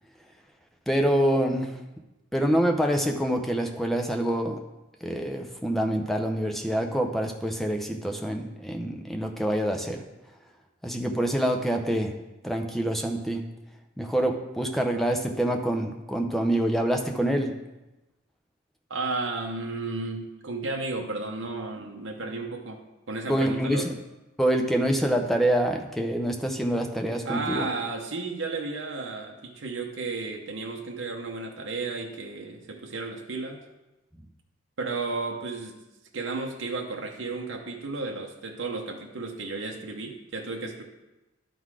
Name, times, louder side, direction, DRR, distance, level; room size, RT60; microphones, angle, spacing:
voice 1, 0.9-1.8 2.3-4.6 5.0-10.0 10.8-12.1 12.4-13.5 14.0-17.5 23.3-24.0 24.4-27.7, right 1 dB, ahead, 2 dB, 0.5 m, -26 dB
voice 2, 18.9-23.9 27.2-33.6 34.8-35.8 36.1-40.8, right 3 dB, 65° right, 1 dB, 0.8 m, -33 dB
11.5 x 3.9 x 4.8 m, 1.0 s
head